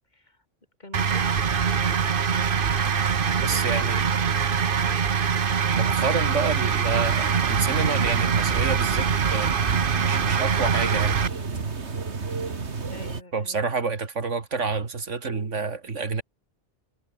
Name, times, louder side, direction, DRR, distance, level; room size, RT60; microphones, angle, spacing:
voice 1, 0.1-0.4 0.8-2.7 3.1-5.2 10.1-10.4 12.9-13.7, left 2 dB, 40° left, 5.1 m, -45 dB
sound 1, 0.9-11.3, right 6 dB, 50° right, 1.1 m, -23 dB
voice 2, 3.4-4.1 5.7-9.5 10.0-11.2 13.3-16.2, right 4 dB, 90° right, 2.5 m, -28 dB
sound 2, 7.0-13.2, right 4 dB, 65° right, 2.3 m, -31 dB
omnidirectional pair, 1.2 m